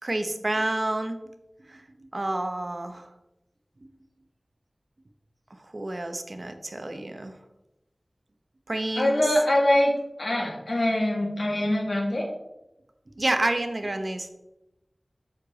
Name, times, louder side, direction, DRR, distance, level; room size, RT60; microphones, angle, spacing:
voice 1, 0.0-1.2 1.7-3.1 3.8-3.9 5.5-7.4 8.7-9.3 13.2-14.3, right 1 dB, 50° right, 7 dB, 0.9 m, -29 dB
voice 2, 9.0-9.9 10.2-12.3, left 1 dB, 65° left, -2 dB, 2.5 m, -23 dB
7.9 x 6.7 x 4.0 m, 0.93 s
wide cardioid pair, 60°, 0 cm